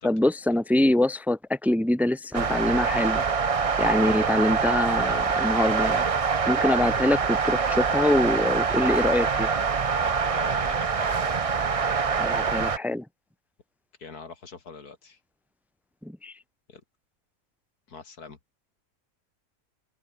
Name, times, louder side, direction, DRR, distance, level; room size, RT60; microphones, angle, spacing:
voice 1, 0.0-3.2 3.8-6.0 6.5-9.5 12.2-13.0 16.0-16.4, left 1 dB, ahead, 1.5 m, -24 dB
sound 1, 2.3-12.8, right 5 dB, 35° right, 0.5 m, -25 dB
voice 2, 10.0-11.2 14.0-15.2 16.7-16.8 17.9-18.4, left 5 dB, 75° left, 3.0 m, -43 dB
omnidirectional pair, 1.7 m